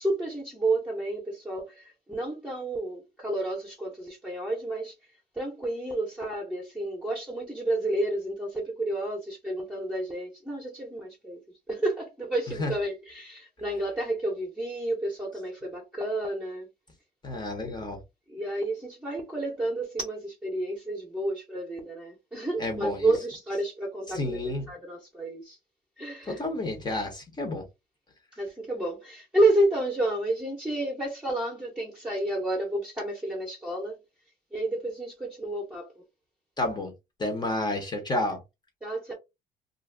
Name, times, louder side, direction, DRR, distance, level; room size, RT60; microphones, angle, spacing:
voice 1, 0.0-4.9 5.4-11.4 11.7-16.7 18.3-25.6 26.0-26.4 28.3-34.0 34.5-35.9 38.8-39.1, right 1 dB, 5° right, 0.9 m, -30 dB
voice 2, 17.2-18.0 22.6-23.1 24.1-24.7 26.3-27.7 36.6-36.9 37.2-38.4, left 2 dB, 25° left, 0.9 m, -30 dB
2.5 x 2.3 x 3.3 m
cardioid pair, 110°, 17 cm